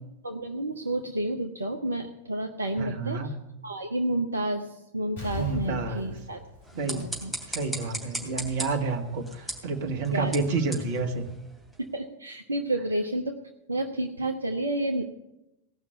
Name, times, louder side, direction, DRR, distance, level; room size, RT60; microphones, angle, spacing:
voice 1, 0.2-3.3 3.6-6.4 6.7-7.3 10.1-10.3 11.9-13.4 13.7-15.0, right 1 dB, 75° right, 5 dB, 0.8 m, -30 dB
voice 2, 2.8-3.4 5.3-6.1 6.8-7.2 7.5-11.3, right 3 dB, 50° right, 5 dB, 1.7 m, -29 dB
Explosion, 5.2-7.8 8.1-8.2, left 2 dB, 55° left, 6.2 m, -39 dB
sound 1, 6.6-11.9, right 1 dB, ahead, 2.9 m, -39 dB
17.5 x 6.0 x 9.2 m, 0.96 s
figure-of-eight pair, 90°, 0 cm